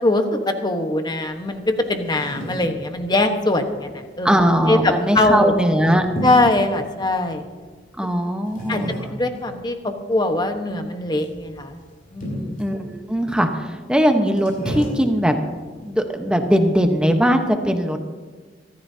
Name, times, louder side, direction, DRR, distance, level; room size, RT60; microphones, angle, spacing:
voice 1, 0.0-4.3 4.7-5.5 6.2-7.4 8.7-8.8 9.1-11.8 12.1-12.5, left 2 dB, 25° left, 5 dB, 1.2 m, -21 dB
sound 1, 1.4-17.1, equal, 55° left, 6.0 m, -36 dB
voice 2, 4.2-6.1 8.0-8.9 12.6-15.3 15.8-18.0, equal, 5° right, 5 dB, 1.0 m, -19 dB
26.0 x 13.5 x 2.8 m, 1.4 s
head